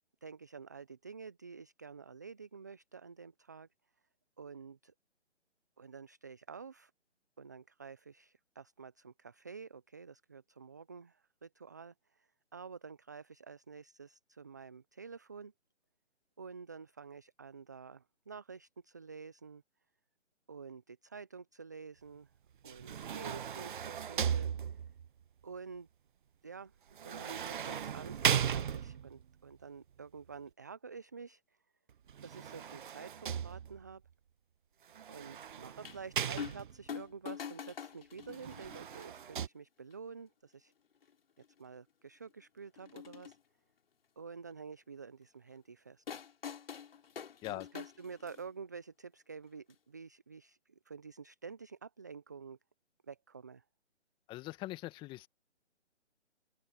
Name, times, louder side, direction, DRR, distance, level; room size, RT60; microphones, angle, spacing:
voice 1, 0.2-3.7 4.4-4.9 5.8-6.9 7.4-15.5 16.4-19.6 20.5-22.3 22.6-24.5 25.4-25.9 26.4-26.7 27.0-31.4 32.2-34.0 35.1-40.7 41.6-43.4 44.2-46.0 47.5-52.6 53.1-53.6, right 5 dB, 15° right, 0.5 m, -49 dB
sound 1, 22.6-25.1 27.0-29.2 32.1-33.9 34.9-36.9 38.3-39.5, right 8 dB, 45° right, 1.5 m, -37 dB
sound 2, 35.8-36.0 36.4-36.6 36.9-39.0 39.9-40.0 41.0-41.1 41.4-41.5 42.8-43.4 46.1-48.5 49.7-49.8, left 7 dB, 55° left, 4.4 m, -45 dB
voice 2, 54.3-55.3, left 17 dB, 15° left, 1.8 m, -42 dB
open air
figure-of-eight pair, 145°, 35 cm